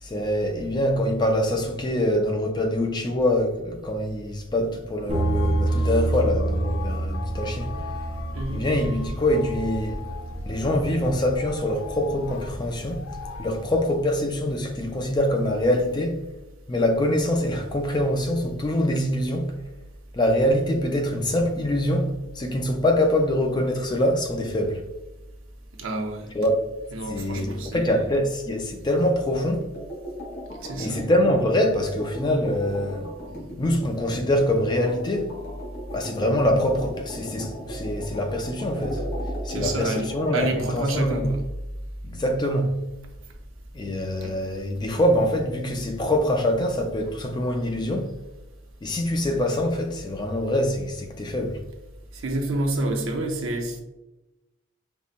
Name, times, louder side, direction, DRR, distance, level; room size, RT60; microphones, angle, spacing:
voice 1, 0.0-7.7 8.5-10.0 10.5-13.0 13.4-16.2 16.7-19.6 20.1-24.8 26.3-26.6 27.1-29.7 30.7-33.1 33.6-35.4 35.9-39.0 39.4-41.3 42.0-42.8 43.7-48.1 48.8-51.6, left 1 dB, 20° left, 0.3 m, -24 dB
sound 1, 5.1-13.6, left 2 dB, 85° left, 0.5 m, -37 dB
Bass guitar, 5.1-11.3, right 2 dB, 35° right, 0.5 m, -28 dB
voice 2, 8.3-8.7 25.8-26.3 26.9-28.0 30.6-31.0 39.5-41.4 44.2-44.3 52.1-53.8, right 2 dB, 75° right, 0.6 m, -28 dB
sound 2, 29.7-40.5, equal, 50° left, 1.3 m, -38 dB
5.3 x 2.1 x 2.4 m
head